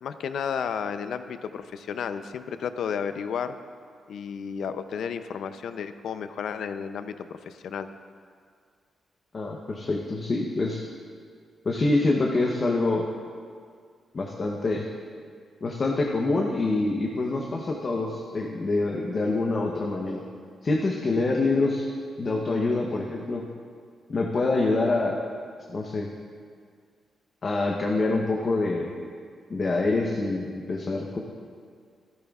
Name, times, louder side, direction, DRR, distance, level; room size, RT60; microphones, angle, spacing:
voice 1, 0.0-3.6 4.1-7.9, left 7 dB, 70° left, 10 dB, 0.5 m, -32 dB
voice 2, 9.3-10.8 11.6-13.0 14.1-14.9 15.6-20.2 20.6-21.8 22.2-23.4 24.1-25.2 25.7-26.1 27.4-28.9 29.5-31.2, left 2 dB, 35° left, -1 dB, 0.8 m, -26 dB
14.0 x 13.5 x 2.4 m, 2.1 s
wide cardioid pair, 165°, 0 cm